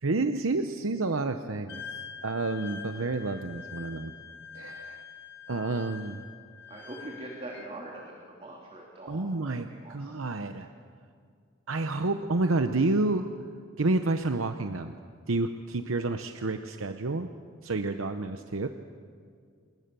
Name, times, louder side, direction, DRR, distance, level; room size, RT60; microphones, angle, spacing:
voice 1, 0.0-1.9 2.2-4.1 4.5-5.0 5.5-6.2 9.1-10.7 11.7-13.3 13.8-15.0 15.3-17.3 17.6-18.7, right 2 dB, 80° right, 7 dB, 0.9 m, -29 dB
Wind instrument woodwind instrument, 1.7-7.7, left 7 dB, 60° left, 1.6 m, -45 dB
voice 2, 6.7-10.1, right 1 dB, 30° right, -2 dB, 3.0 m, -43 dB
28.5 x 20.5 x 6.9 m, 2.1 s
head